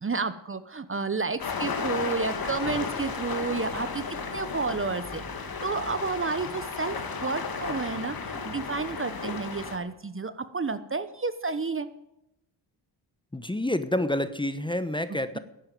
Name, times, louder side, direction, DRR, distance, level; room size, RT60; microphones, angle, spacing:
voice 1, 0.0-5.2 5.6-11.9, right 4 dB, 30° right, 13 dB, 1.0 m, -31 dB
sound 1, 1.4-9.8, left 5 dB, 50° left, 2.3 m, -34 dB
voice 2, 13.3-15.4, left 1 dB, 10° left, 12 dB, 1.1 m, -28 dB
11.5 x 8.9 x 9.2 m, 0.84 s
supercardioid pair, 50°, 44 cm